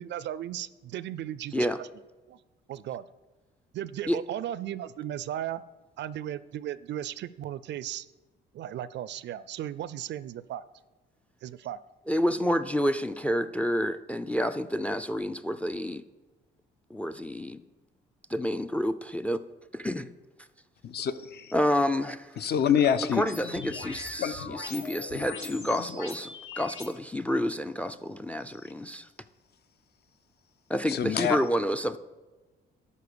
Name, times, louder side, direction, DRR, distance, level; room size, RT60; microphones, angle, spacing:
voice 1, 0.0-1.9 2.3-2.4 2.7-3.0 3.7-5.6 6.0-8.1 8.5-10.6 11.4-11.8, right 11 dB, 65° right, 18 dB, 0.4 m, -36 dB
voice 2, 12.1-16.0 16.9-17.6 18.3-19.4 19.7-20.1 21.5-22.7 23.1-29.1 30.7-32.0, equal, 5° left, 13 dB, 0.4 m, -29 dB
voice 3, 20.8-21.5 22.4-23.2 24.2-24.3 30.9-31.4, left 8 dB, 55° left, 12 dB, 0.6 m, -26 dB
sound 1, 23.3-26.9, left 4 dB, 80° left, 1.3 m, -40 dB
11.0 x 4.3 x 6.8 m, 1.2 s
cardioid pair, 90°, 20 cm